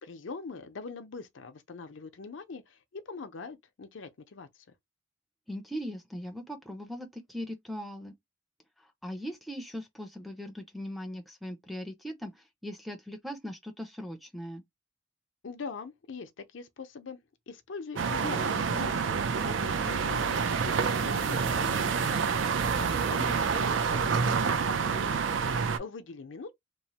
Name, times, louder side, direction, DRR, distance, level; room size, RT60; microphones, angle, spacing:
voice 1, 0.0-4.6 15.4-17.2 17.5-19.2 19.4-22.4 23.1-25.2 25.8-26.5, left 4 dB, 85° left, 0.5 m, -43 dB
voice 2, 5.5-8.1 9.0-14.6 22.8-23.1, equal, ahead, 0.4 m, -39 dB
sound 1, 18.0-25.8, right 5 dB, 85° right, 0.5 m, -28 dB
3.0 x 2.1 x 2.8 m
head